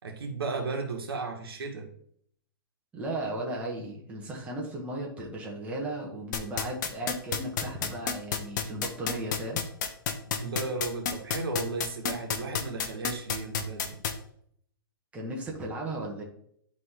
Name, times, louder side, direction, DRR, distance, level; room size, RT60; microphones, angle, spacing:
voice 1, 0.0-1.9 10.3-14.0, right 3 dB, 85° right, 1 dB, 2.1 m, -34 dB
voice 2, 2.9-9.7 15.1-16.2, right 1 dB, 10° right, -3 dB, 1.6 m, -36 dB
sound 1, 6.3-14.1, left 7 dB, 50° left, 1.1 m, -29 dB
11.0 x 4.0 x 3.8 m, 0.66 s
hypercardioid pair, 150°, 12 cm